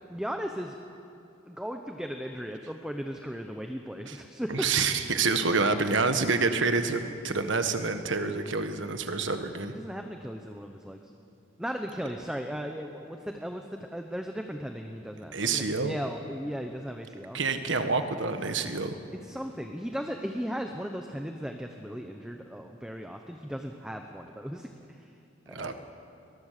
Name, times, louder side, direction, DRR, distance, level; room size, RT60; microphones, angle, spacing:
voice 1, 0.1-0.8 1.5-4.7 9.7-11.1 11.6-17.4 19.2-25.1 25.5-25.8, equal, 5° right, 4 dB, 0.8 m, -37 dB
voice 2, 4.5-9.7 15.3-15.9 17.3-19.0 25.5-25.7, right 4 dB, 75° right, 8 dB, 1.4 m, -27 dB
23.0 x 20.0 x 6.7 m, 2.7 s
head